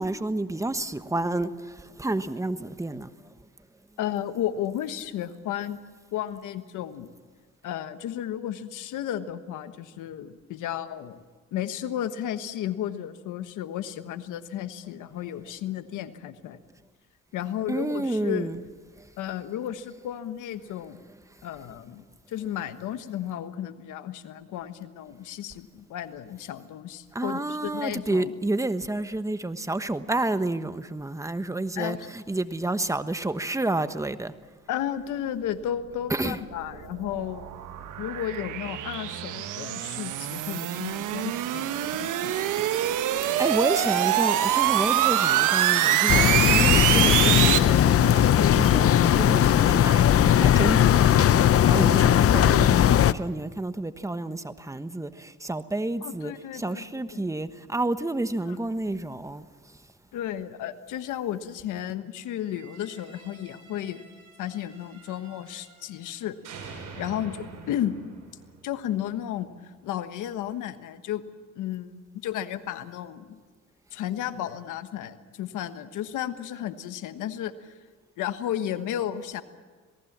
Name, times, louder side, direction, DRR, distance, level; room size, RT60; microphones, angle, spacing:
voice 1, 0.0-3.1 17.7-18.6 27.1-34.3 36.1-36.4 43.4-51.4 51.7-59.5, right 2 dB, 10° right, 1.2 m, -30 dB
voice 2, 4.0-5.8 6.1-7.1 7.6-11.2 11.5-16.6 17.3-18.5 19.2-21.0 21.4-28.4 31.7-32.0 34.7-37.5 38.0-42.7 51.7-52.5 56.0-57.3 58.5-58.6 60.1-64.0 64.4-66.4 66.7-68.0 68.6-71.2 71.5-72.0 72.2-73.4 73.9-77.7 78.2-79.4, left 11 dB, 85° left, 1.3 m, -33 dB
sound 1, 36.4-47.6, right 12 dB, 85° right, 1.3 m, -25 dB
sound 2, 46.1-53.1, left 10 dB, 50° left, 0.7 m, -19 dB
sound 3, 62.3-66.1 66.4-69.5, right 5 dB, 65° right, 6.7 m, -47 dB
27.0 x 18.5 x 7.4 m
cardioid pair, 90°, 30 cm